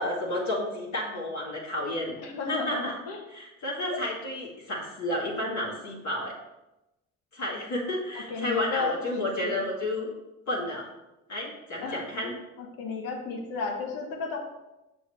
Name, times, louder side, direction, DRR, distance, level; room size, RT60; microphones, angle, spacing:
voice 1, 0.0-2.2 2.5-3.0 3.3-6.3 7.3-10.1 10.5-10.9 11.3-12.3, left 1 dB, 50° left, -5 dB, 2.2 m, -31 dB
voice 2, 2.2-3.2 3.9-4.0 8.3-9.5 11.8-12.0 12.6-14.4, left 4 dB, 70° left, 1 dB, 1.4 m, -33 dB
6.9 x 6.2 x 3.3 m, 0.96 s
hypercardioid pair, 50°, 36 cm